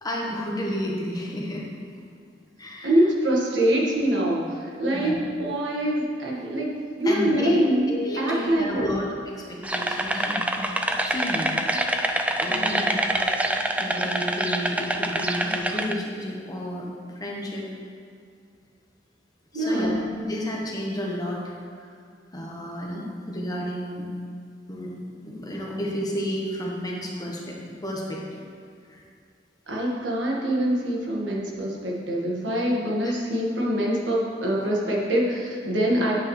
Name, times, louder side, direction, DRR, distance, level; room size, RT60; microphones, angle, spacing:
voice 1, 0.0-1.7 2.6-2.9 4.9-5.3 7.0-7.6 7.9-9.1 9.3-11.5 12.4-13.5 13.8-17.7 19.5-21.6 22.3-24.1 24.7-24.9 25.2-28.4 28.9-29.0 33.0-33.1, equal, 20° left, -2 dB, 1.1 m, -31 dB
voice 2, 2.8-5.1 5.4-6.7 7.0-9.0 12.5-13.1 19.5-20.0 29.7-36.1, right 1 dB, 75° right, -3 dB, 1.6 m, -24 dB
sound 1, 9.6-15.9, right 1 dB, 10° right, 0.4 m, -26 dB
9.1 x 8.4 x 3.2 m, 2.3 s
head